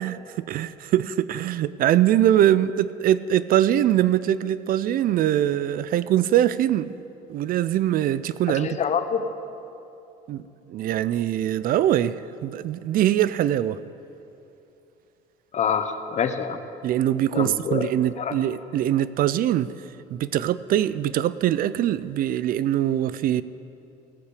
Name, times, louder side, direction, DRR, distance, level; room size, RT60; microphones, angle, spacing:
voice 1, 0.0-7.0 7.3-8.7 10.3-10.4 10.7-13.8 16.8-19.7 20.1-23.4, right 11 dB, 60° right, 16 dB, 0.4 m, -22 dB
voice 2, 8.5-9.3 15.5-16.6 17.3-17.9 18.2-18.4, left 7 dB, 45° left, 9 dB, 0.8 m, -26 dB
17.0 x 8.2 x 4.9 m, 2.8 s
cardioid pair, 110°, 17 cm